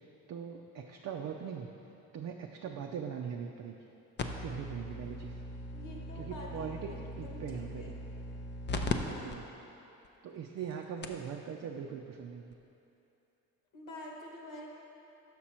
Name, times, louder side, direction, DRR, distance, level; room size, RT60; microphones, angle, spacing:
voice 1, 0.3-1.7 2.1-3.8 4.4-5.4 6.2-6.9 7.2-8.0 8.8-9.4 10.2-12.5, right 7 dB, 45° right, 2 dB, 0.5 m, -41 dB
sound 1, 4.2-8.9 9.3-9.4 10.0-10.1 10.7-10.8 11.0-11.3 12.5-12.6, left 3 dB, 30° left, 0.5 m, -39 dB
voice 2, 5.7-8.0 9.0-9.6 10.6-10.7 11.0-11.2 13.7-14.7, left 1 dB, 60° left, -1 dB, 1.4 m, -48 dB
6.0 x 5.8 x 4.3 m, 2.9 s
supercardioid pair, 70°, 37 cm